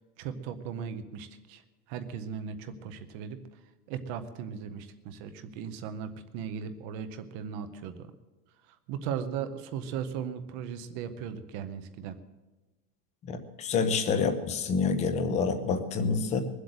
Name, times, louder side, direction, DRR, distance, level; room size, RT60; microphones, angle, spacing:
voice 1, 0.2-1.6 1.9-3.4 3.9-8.1 8.9-12.1, right 7 dB, 20° right, 10 dB, 0.6 m, -37 dB
voice 2, 13.2-16.4, left 5 dB, 15° left, 8 dB, 0.8 m, -27 dB
21.0 x 8.0 x 7.7 m, 1.1 s
supercardioid pair, 175°, 47 cm